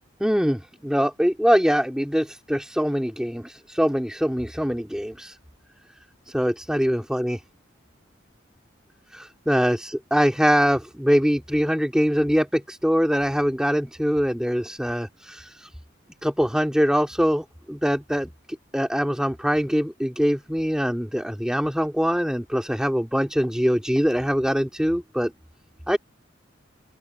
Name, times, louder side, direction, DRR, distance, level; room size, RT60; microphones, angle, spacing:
voice 1, 0.2-5.4 6.3-7.4 9.1-15.7 16.2-18.3 18.7-25.3 25.9-26.0, equal, 5° right, 3.1 m, -23 dB
open air
head